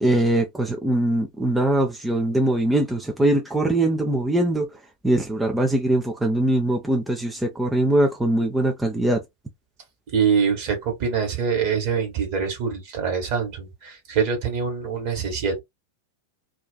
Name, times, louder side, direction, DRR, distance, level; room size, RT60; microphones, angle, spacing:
voice 1, 0.0-4.8 5.0-9.2, right 1 dB, 5° right, 0.5 m, -22 dB
voice 2, 10.1-15.6, right 6 dB, 45° right, 1.3 m, -24 dB
2.4 x 2.3 x 2.2 m
figure-of-eight pair, 90°, 0 cm